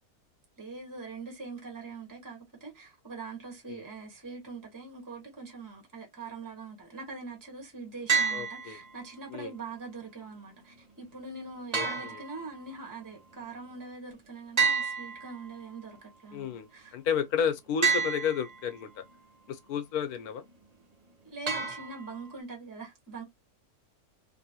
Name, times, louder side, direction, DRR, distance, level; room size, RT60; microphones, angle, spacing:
voice 1, 0.6-16.9 21.2-23.2, right 4 dB, 15° right, 1.3 m, -43 dB
sound 1, 8.1-9.1 11.7-12.8 14.6-15.8 17.8-18.8 21.5-22.4, right 6 dB, 35° right, 0.6 m, -30 dB
voice 2, 8.3-8.8 9.3-9.5 11.7-12.2 16.3-19.0 19.5-20.4, left 7 dB, 85° left, 1.2 m, -32 dB
3.3 x 2.7 x 2.7 m
omnidirectional pair, 1.6 m